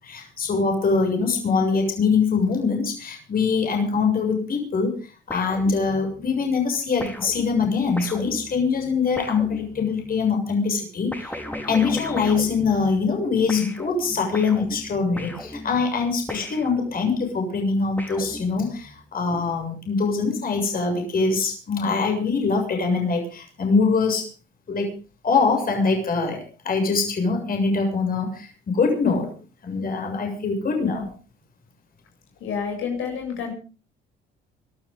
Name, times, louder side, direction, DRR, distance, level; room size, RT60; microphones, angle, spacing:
voice 1, 0.0-5.0 5.3-11.4 11.6-24.3 24.7-24.9 25.2-29.3 29.6-31.1, left 4 dB, 45° left, 3 dB, 7.2 m, -23 dB
sound 1, 5.3-6.3 7.0-10.2 11.1-13.2 13.5-17.2 18.0-19.0, left 1 dB, 10° left, 4.3 m, -37 dB
voice 2, 32.4-33.5, left 6 dB, 75° left, 2 dB, 7.5 m, -29 dB
24.0 x 13.5 x 3.8 m, 0.36 s
cardioid pair, 90°, 21 cm